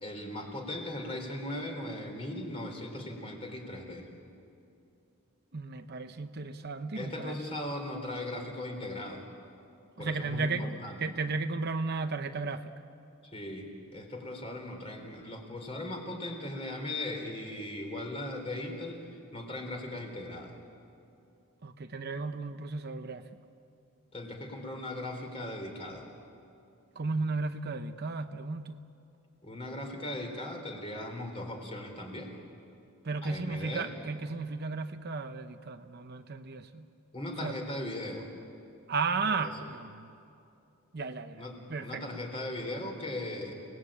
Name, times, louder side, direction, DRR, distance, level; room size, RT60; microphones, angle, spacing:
voice 1, 0.0-4.1 6.9-9.2 10.0-11.0 13.2-20.6 24.1-26.1 29.4-32.3 33.2-33.9 37.1-38.3 39.4-39.6 41.3-43.5, left 1 dB, 25° left, 3 dB, 3.8 m, -38 dB
voice 2, 5.5-7.4 10.0-12.7 21.6-23.2 27.0-28.9 33.0-36.9 37.4-37.6 38.9-40.1 40.9-41.4 41.7-42.0, right 4 dB, 45° right, 8 dB, 0.8 m, -34 dB
29.5 x 19.5 x 8.8 m, 2.6 s
head